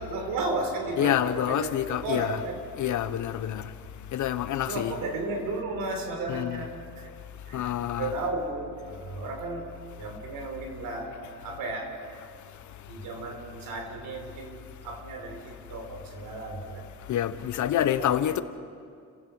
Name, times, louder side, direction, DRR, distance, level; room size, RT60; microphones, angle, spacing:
voice 1, 0.0-2.6 3.4-3.5 4.6-7.1 7.4-9.7 10.0-11.2 11.4-12.0 12.9-16.9 17.7-18.3, right 2 dB, 80° right, 4.3 m, -34 dB
voice 2, 1.0-2.4 2.8-3.6 4.1-4.9 6.3-6.6 7.5-8.1 17.1-18.4, left 11 dB, 60° left, 1.1 m, -27 dB
29.5 x 16.0 x 6.3 m
cardioid pair, 120°, 34 cm